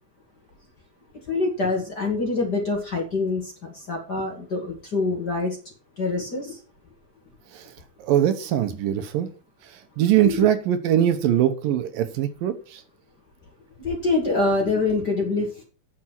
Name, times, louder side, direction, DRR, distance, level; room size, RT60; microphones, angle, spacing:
voice 1, 1.3-3.4 3.9-5.6 6.0-6.6 10.2-10.5 13.8-15.6, left 3 dB, 35° left, 0 dB, 2.1 m, -25 dB
voice 2, 8.0-9.3 9.6-12.8, right 11 dB, 75° right, 9 dB, 2.5 m, -22 dB
9.3 x 7.5 x 5.8 m, 0.36 s
omnidirectional pair, 4.3 m